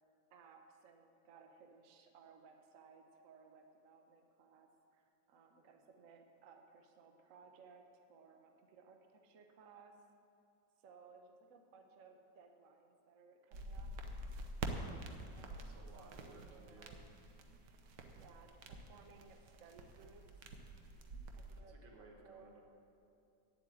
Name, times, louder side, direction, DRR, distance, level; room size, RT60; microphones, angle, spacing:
voice 1, 0.3-10.0 10.8-13.9 15.4-17.0 18.1-20.5 21.4-22.6, right 5 dB, 55° right, 4 dB, 1.1 m, -62 dB
sound 1, 13.5-21.6, right 2 dB, 70° right, 1.5 m, -47 dB
voice 2, 15.5-16.9 21.7-22.6, right 3 dB, 85° right, 1 dB, 2.2 m, -60 dB
9.5 x 8.1 x 8.5 m, 2.5 s
omnidirectional pair, 2.0 m